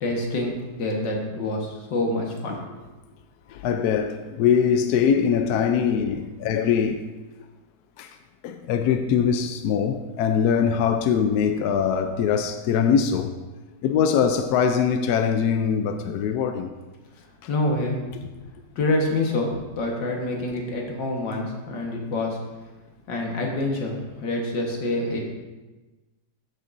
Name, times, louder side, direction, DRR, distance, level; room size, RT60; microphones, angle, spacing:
voice 1, 0.0-2.6 17.5-18.0 18.8-22.4 23.1-25.2, left 2 dB, 90° left, 2.1 m, -26 dB
voice 2, 3.5-7.0 8.0-8.1 8.4-13.3 13.8-16.7, left 7 dB, 70° left, 1.0 m, -22 dB
14.0 x 6.7 x 2.6 m
omnidirectional pair, 1.9 m